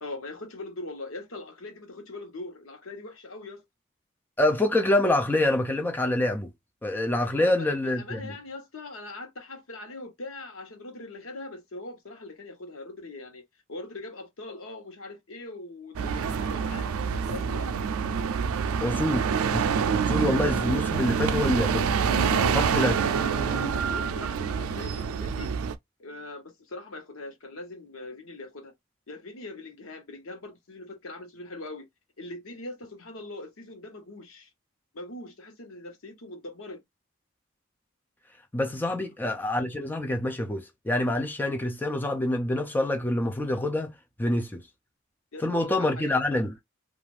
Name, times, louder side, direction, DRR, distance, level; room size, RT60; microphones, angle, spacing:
voice 1, 0.0-3.6 7.3-13.4 13.7-17.7 22.2-25.5 26.0-28.7 29.1-31.9 32.2-34.5 34.9-36.8 38.8-39.0 45.3-46.4, left 2 dB, 85° left, 0.9 m, -41 dB
voice 2, 4.4-6.5 6.8-8.2 18.8-19.6 20.1-21.9 22.5-23.0 38.5-43.9 44.2-44.6 45.4-46.5, left 1 dB, 10° left, 0.3 m, -26 dB
sound 1, 16.0-25.8, right 6 dB, 90° right, 0.4 m, -26 dB
2.4 x 2.4 x 3.2 m
head